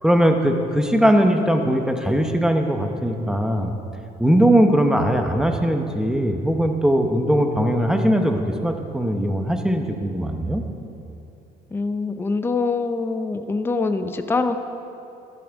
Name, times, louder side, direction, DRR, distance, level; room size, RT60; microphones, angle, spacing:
voice 1, 0.0-3.7 4.2-10.6, equal, 5° right, 5 dB, 0.9 m, -20 dB
voice 2, 11.7-14.6, left 4 dB, 15° left, 8 dB, 0.5 m, -24 dB
12.5 x 12.0 x 3.6 m, 2.7 s
cardioid pair, 110°, 17 cm